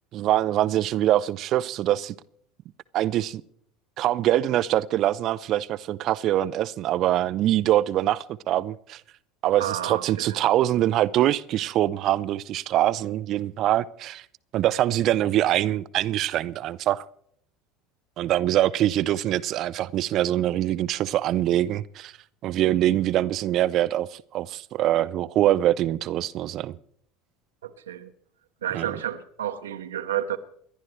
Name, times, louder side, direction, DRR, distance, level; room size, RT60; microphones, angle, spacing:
voice 1, 0.1-2.1 2.9-3.4 4.0-9.0 9.4-14.2 14.5-17.0 18.2-22.1 22.4-26.8 28.7-28.9, right 13 dB, 45° right, 0.5 m, -24 dB
voice 2, 9.6-10.4 27.6-28.1 28.6-30.4, right 11 dB, 75° right, 0.9 m, -31 dB
28.5 x 11.5 x 3.2 m
figure-of-eight pair, 70°, 0 cm